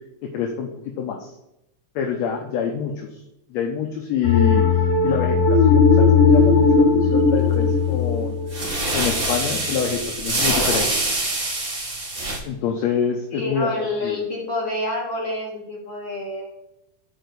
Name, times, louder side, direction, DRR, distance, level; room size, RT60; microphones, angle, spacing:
voice 1, 0.3-0.7 1.0-1.3 2.0-3.2 3.5-4.6 5.0-8.4 8.9-10.9 12.5-13.7 14.0-14.2, left 7 dB, 70° left, 1 dB, 2.0 m, -26 dB
sound 1, 4.2-9.5, left 5 dB, 55° left, 3.2 m, -17 dB
sound 2, 7.4-7.6 8.5-12.4, right 2 dB, 30° right, 1.8 m, -24 dB
voice 2, 13.3-16.5, left 2 dB, 40° left, -5 dB, 3.6 m, -28 dB
6.3 x 4.7 x 6.7 m, 0.85 s
omnidirectional pair, 3.5 m